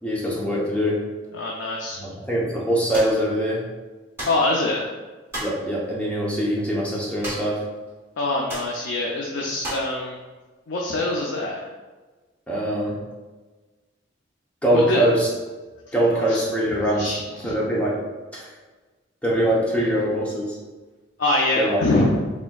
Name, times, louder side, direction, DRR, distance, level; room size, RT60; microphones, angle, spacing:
voice 1, 0.0-1.0 2.0-3.6 5.4-7.6 12.5-13.0 14.6-15.3 15.9-17.1 17.4-18.0 18.3-18.5 19.2-20.6 21.6-21.8, equal, 5° left, -5 dB, 0.7 m, -23 dB
voice 2, 1.3-2.0 4.3-4.9 8.2-10.2 10.7-11.6 14.7-15.1 16.0-16.4 16.9-17.5 21.2-22.2, left 2 dB, 75° left, -2 dB, 0.5 m, -24 dB
sound 1, 2.9-3.2 4.2-4.4 5.3-5.6 7.2-7.6 7.9-8.0 8.5-8.7 9.6-9.9, right 1 dB, 15° right, 1.4 m, -32 dB
4.3 x 3.5 x 2.3 m, 1.3 s
head